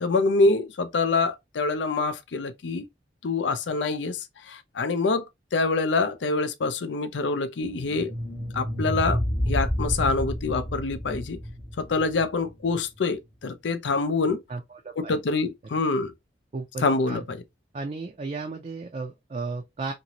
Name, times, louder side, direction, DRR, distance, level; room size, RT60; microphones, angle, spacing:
voice 1, 0.0-2.9 3.2-5.2 5.5-8.1 8.5-9.2 9.5-11.4 11.8-14.4 15.0-16.1 16.8-17.4, left 3 dB, 90° left, 0.5 m, -25 dB
sound 1, 7.6-12.7, equal, 15° left, 0.8 m, -30 dB
voice 2, 14.5-15.2 16.5-17.2 17.7-19.9, right 3 dB, 35° right, 0.4 m, -34 dB
2.9 x 2.6 x 2.8 m
head